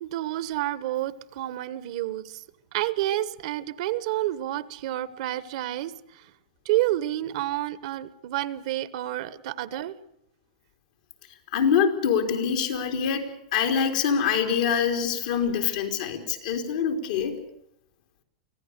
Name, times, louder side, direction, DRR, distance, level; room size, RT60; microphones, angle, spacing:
voice 1, 0.0-2.3 2.7-5.9 6.7-9.9, right 15 dB, 65° right, 17 dB, 1.1 m, -29 dB
voice 2, 11.5-17.4, left 7 dB, 75° left, 5 dB, 3.9 m, -25 dB
24.5 x 16.5 x 8.2 m, 0.77 s
hypercardioid pair, 120°, 4 cm